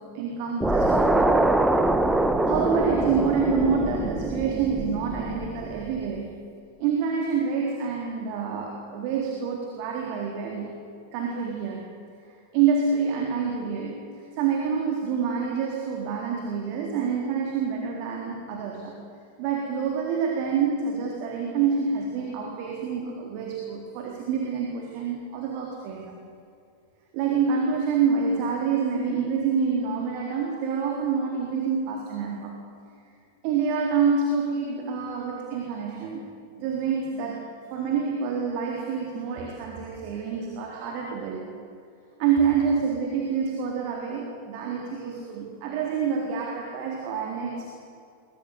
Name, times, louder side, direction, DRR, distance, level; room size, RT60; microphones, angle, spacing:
voice 1, 0.0-1.5 2.5-6.4 6.8-10.8 11.1-11.9 12.5-19.0 19.4-26.2 27.1-32.7 33.4-36.2 36.5-41.4 42.2-47.7, right 6 dB, 45° right, 0 dB, 3.9 m, -27 dB
sound 1, 0.6-5.9, right 2 dB, 5° right, 1.5 m, -24 dB
24.0 x 21.5 x 8.4 m, 2.4 s
figure-of-eight pair, 90°, 0 cm